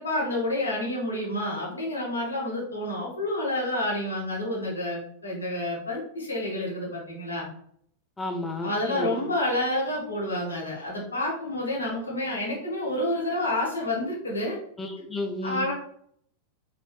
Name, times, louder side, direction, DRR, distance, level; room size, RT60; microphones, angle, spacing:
voice 1, 0.0-7.5 8.6-14.6 15.4-15.7, left 1 dB, 75° left, -3 dB, 1.3 m, -29 dB
voice 2, 8.2-9.3 14.8-15.7, left 2 dB, 10° left, 3 dB, 0.4 m, -32 dB
4.0 x 3.1 x 2.3 m, 0.66 s
figure-of-eight pair, 90°, 0 cm